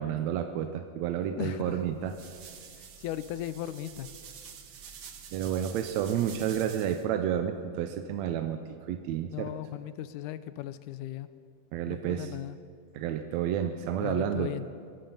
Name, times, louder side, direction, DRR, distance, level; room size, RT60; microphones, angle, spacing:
voice 1, 0.0-2.2 5.3-8.6 8.9-9.5 11.7-12.4 13.0-14.5, right 9 dB, 80° right, 7 dB, 1.8 m, -30 dB
voice 2, 1.4-1.8 3.0-4.1 9.3-11.3 11.9-12.6 14.0-14.7, left 13 dB, 90° left, 13 dB, 2.1 m, -37 dB
sound 1, 1.7-7.0, right 7 dB, 60° right, 1.2 m, -48 dB
22.0 x 11.5 x 5.5 m, 2.3 s
omnidirectional pair, 3.5 m